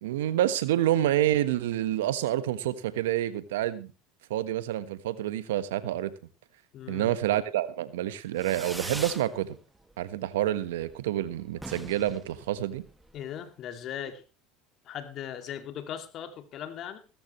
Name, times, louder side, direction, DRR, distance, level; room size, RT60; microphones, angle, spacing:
voice 1, 0.0-3.9 4.3-6.1 6.9-9.6 10.0-12.8, right 13 dB, 85° right, 13 dB, 1.3 m, -28 dB
voice 2, 6.7-7.2 13.1-14.2 14.8-17.0, left 9 dB, 50° left, 8 dB, 2.4 m, -38 dB
Fireworks, 8.4-9.3 9.6-10.2 10.5-10.6 10.8-10.9 11.2-11.3 11.5-13.2, right 1 dB, 5° right, 1.4 m, -41 dB
17.5 x 14.0 x 3.2 m, 0.30 s
supercardioid pair, 95°, 0 cm